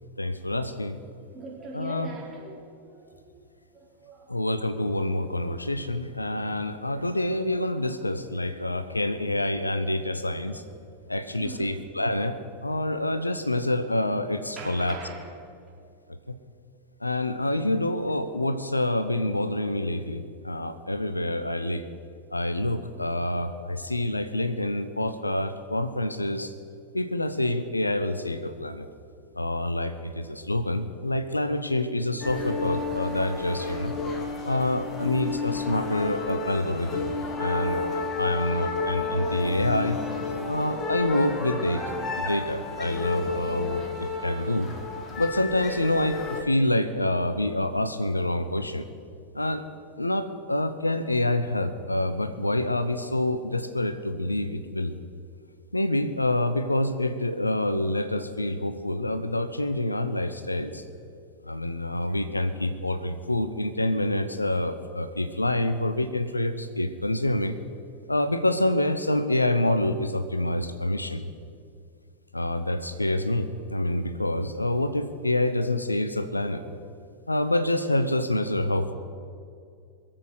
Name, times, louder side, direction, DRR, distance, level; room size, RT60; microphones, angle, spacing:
voice 1, 0.2-1.0 1.7-2.1 4.3-10.6 11.1-15.0 17.0-21.8 22.3-26.5 26.9-28.9 29.3-33.9 34.4-37.0 37.4-40.0 40.5-41.8 42.2-44.7 45.2-48.8 49.3-49.6 50.0-54.9 55.7-60.8 61.5-67.6 68.1-71.2 72.3-76.6 77.3-78.9, left 1 dB, 85° left, 11 dB, 0.7 m, -27 dB
voice 2, 1.3-3.4 3.7-4.4 5.8-6.0 8.8-9.0 11.4-11.8 13.4-13.7 14.6-15.3, right 3 dB, 20° right, -4 dB, 4.4 m, -42 dB
sound 1, 32.2-46.4, left 4 dB, 25° left, 1.6 m, -31 dB
22.5 x 7.8 x 6.5 m, 2.4 s
figure-of-eight pair, 90°, 0 cm